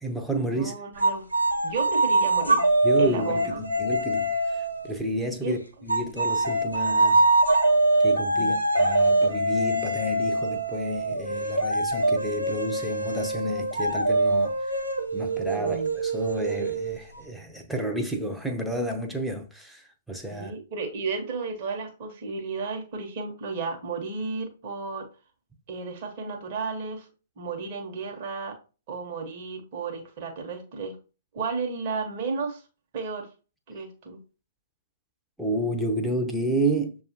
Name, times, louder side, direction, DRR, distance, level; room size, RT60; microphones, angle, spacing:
voice 1, 0.0-0.7 2.8-7.2 7.5-7.6 8.0-14.7 15.1-20.5 35.4-37.0, right 1 dB, ahead, 0.6 m, -31 dB
voice 2, 0.5-1.3 1.6-2.7 3.0-3.6 5.4-5.6 8.3-8.6 15.6-15.9 20.3-25.1 25.7-27.1 27.4-28.6 28.9-31.0 31.3-32.6 32.9-33.3 33.7-34.2, right 4 dB, 40° right, 1.0 m, -33 dB
sound 1, 1.0-4.9 5.9-17.2, right 2 dB, 85° right, 0.8 m, -24 dB
6.7 x 2.4 x 2.8 m
figure-of-eight pair, 115°, 0 cm